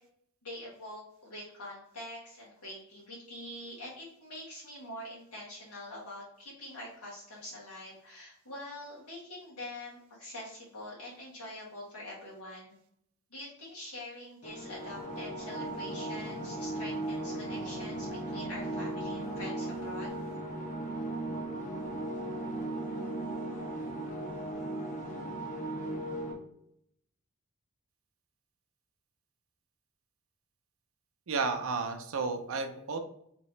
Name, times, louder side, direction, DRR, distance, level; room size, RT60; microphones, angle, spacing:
voice 1, 0.4-12.7 13.3-20.1, left 1 dB, 85° left, -7 dB, 1.3 m, -45 dB
sound 1, 14.4-26.3, right 1 dB, 35° left, 0.9 m, -37 dB
voice 2, 31.3-33.0, right 4 dB, 65° right, 6 dB, 0.5 m, -32 dB
3.6 x 2.9 x 3.1 m, 0.72 s
head